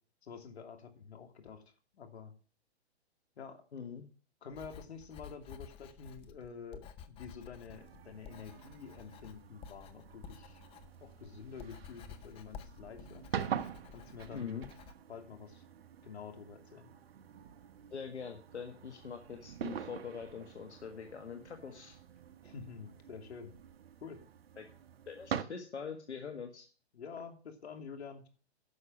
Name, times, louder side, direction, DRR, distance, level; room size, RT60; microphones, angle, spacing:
voice 1, 0.2-1.6 1.9-2.3 3.4-3.6 4.4-10.6 11.0-13.2 13.9-14.6 15.1-15.6 16.0-16.9 22.4-23.5 24.0-24.2 26.9-28.3, left 6 dB, 70° left, 6 dB, 2.8 m, -48 dB
voice 2, 3.7-4.1 14.3-14.6 17.9-22.0 24.6-24.7 25.1-26.6, left 6 dB, 90° left, 4 dB, 1.7 m, -43 dB
Writing, 4.5-14.9, left 7 dB, 15° left, 0.7 m, -53 dB
sound 1, 7.7-25.4, right 8 dB, 60° right, 1.0 m, -45 dB
10.5 x 6.6 x 7.3 m, 0.40 s
hypercardioid pair, 135°, 33 cm